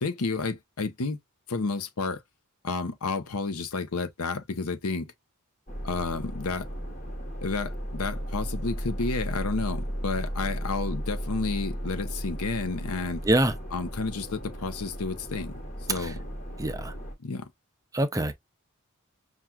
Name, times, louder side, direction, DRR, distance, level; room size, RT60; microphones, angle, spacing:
voice 1, 0.0-1.2 1.5-2.2 2.6-5.1 5.8-6.6 7.4-13.2 13.7-15.5 15.9-16.2 17.2-17.5, left 4 dB, 90° left, 0.8 m, -31 dB
sound 1, 5.7-17.1, equal, 35° left, 1.2 m, -35 dB
voice 2, 16.6-16.9 17.9-18.3, right 1 dB, 15° right, 0.5 m, -25 dB
5.7 x 2.4 x 2.2 m
head